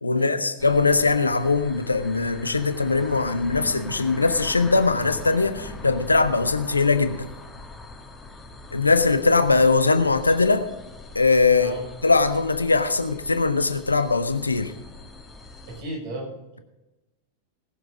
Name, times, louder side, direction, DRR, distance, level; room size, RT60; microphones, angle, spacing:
voice 1, 0.0-7.3 8.7-10.7 11.1-11.7 12.0-14.7, left 3 dB, 80° left, 9 dB, 1.0 m, -21 dB
sound 1, 0.6-15.8, left 3 dB, 10° left, 1.9 m, -41 dB
voice 2, 11.6-11.9 15.7-16.6, right 2 dB, 50° right, 1 dB, 5.6 m, -34 dB
19.5 x 7.2 x 5.2 m, 0.99 s
figure-of-eight pair, 90°, 0 cm